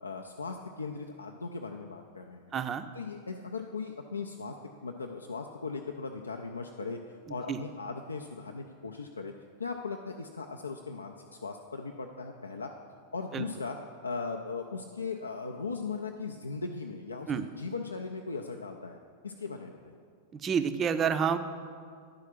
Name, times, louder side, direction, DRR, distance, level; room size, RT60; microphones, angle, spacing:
voice 1, 0.0-2.4 2.9-4.5 4.8-7.0 7.3-9.3 9.6-11.1 11.4-12.7 13.1-13.8 14.0-19.0 19.2-19.9, left 4 dB, 75° left, 2 dB, 0.4 m, -38 dB
voice 2, 2.5-2.9 7.3-7.6 13.3-13.4 17.3-17.5 20.3-21.4, right 7 dB, 25° right, 10 dB, 0.5 m, -29 dB
10.5 x 4.9 x 5.9 m, 2.1 s
figure-of-eight pair, 90°, 0 cm